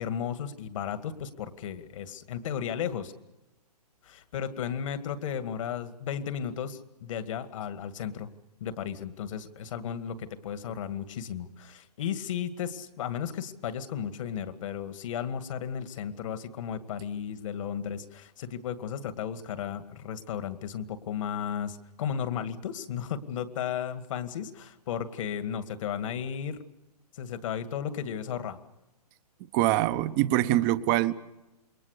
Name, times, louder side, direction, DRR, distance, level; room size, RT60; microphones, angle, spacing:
voice 1, 0.0-3.1 4.0-8.3 8.6-26.6 27.2-28.6, left 8 dB, 50° left, 10 dB, 2.1 m, -34 dB
voice 2, 29.5-31.1, right 15 dB, 30° right, 14 dB, 1.1 m, -24 dB
28.0 x 22.5 x 6.7 m, 0.97 s
hypercardioid pair, 135°, 20 cm